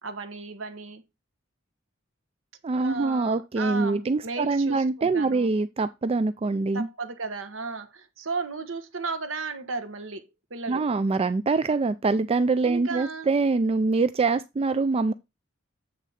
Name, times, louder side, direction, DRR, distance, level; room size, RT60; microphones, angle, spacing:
voice 1, 0.0-1.0 2.7-5.5 6.7-10.9 12.6-13.3, right 4 dB, 80° right, 1.2 m, -35 dB
voice 2, 2.6-6.9 10.7-15.1, right 3 dB, 30° right, 0.3 m, -24 dB
8.3 x 3.9 x 5.6 m
head